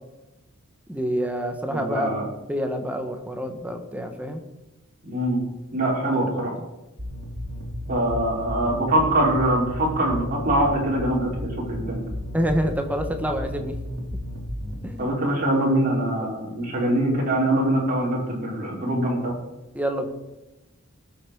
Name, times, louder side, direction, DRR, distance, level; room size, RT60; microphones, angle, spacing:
voice 1, 0.9-4.4 6.3-6.5 12.3-13.8 14.8-15.1 16.2-16.3 19.7-20.1, equal, 5° right, 5 dB, 1.5 m, -27 dB
voice 2, 1.7-2.2 5.0-5.4 5.7-6.5 7.9-12.0 15.0-19.3, right 1 dB, 40° right, -4 dB, 5.7 m, -23 dB
sound 1, 7.0-15.0, equal, 60° right, 5.0 m, -33 dB
19.5 x 8.2 x 5.4 m, 1.0 s
head